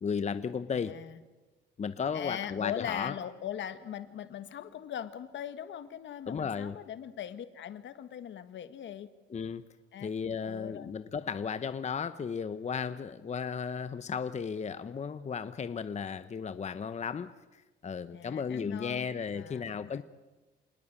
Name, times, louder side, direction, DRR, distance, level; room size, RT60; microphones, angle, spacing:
voice 1, 0.0-0.9 1.8-3.1 6.3-6.8 9.3-9.6 10.0-20.0, left 6 dB, 35° left, 12 dB, 0.9 m, -35 dB
voice 2, 0.7-1.2 2.1-9.1 9.9-10.1 10.4-10.9 18.1-19.1 19.3-20.0, left 10 dB, 70° left, 11 dB, 1.6 m, -40 dB
26.5 x 19.5 x 8.9 m, 1.2 s
cardioid pair, 90°, 20 cm